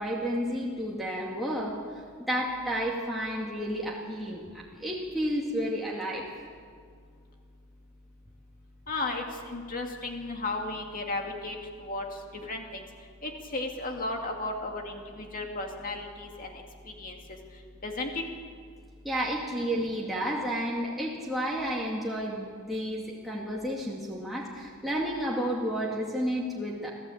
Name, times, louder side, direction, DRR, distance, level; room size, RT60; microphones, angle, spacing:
voice 1, 0.0-6.3 19.0-26.9, equal, ahead, -5 dB, 2.3 m, -31 dB
voice 2, 8.9-12.0 12.4-12.8 13.2-17.2 17.8-18.2, left 2 dB, 40° left, 2 dB, 2.2 m, -34 dB
27.0 x 15.5 x 8.6 m, 2.1 s
head